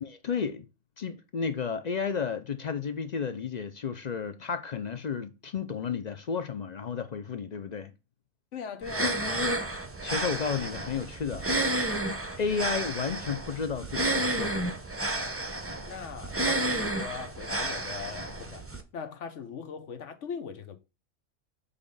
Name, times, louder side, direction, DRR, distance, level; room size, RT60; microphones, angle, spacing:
voice 1, 0.0-0.7 1.0-7.9 10.0-11.5 12.4-14.8, left 6 dB, 50° left, 0.5 m, -32 dB
voice 2, 8.5-9.5 15.9-18.7 18.9-20.8, left 6 dB, 70° left, 1.2 m, -40 dB
sound 1, 8.8-18.8, right 1 dB, 15° right, 0.5 m, -31 dB
6.9 x 3.6 x 5.3 m
omnidirectional pair, 1.3 m